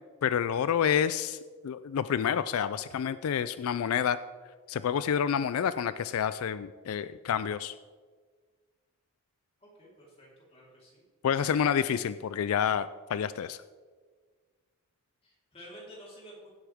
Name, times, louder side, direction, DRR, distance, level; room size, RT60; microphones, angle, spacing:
voice 1, 0.2-1.4 1.6-4.2 4.7-7.7 11.2-13.6, left 8 dB, 90° left, 14 dB, 0.4 m, -28 dB
voice 2, 9.6-11.0 15.2-16.5, equal, 30° left, -5 dB, 3.8 m, -51 dB
16.5 x 8.2 x 3.6 m, 1.5 s
head